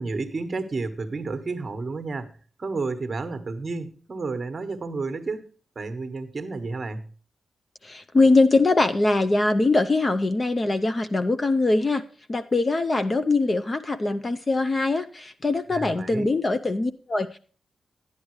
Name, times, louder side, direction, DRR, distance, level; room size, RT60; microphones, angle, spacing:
voice 1, 0.0-2.3 2.6-5.5 5.7-7.1 15.7-16.3, right 3 dB, 30° right, 8 dB, 1.2 m, -31 dB
voice 2, 7.8-12.0 12.3-17.4, left 2 dB, 25° left, 10 dB, 0.5 m, -22 dB
12.0 x 10.5 x 3.1 m, 0.39 s
wide cardioid pair, 170°, 0 cm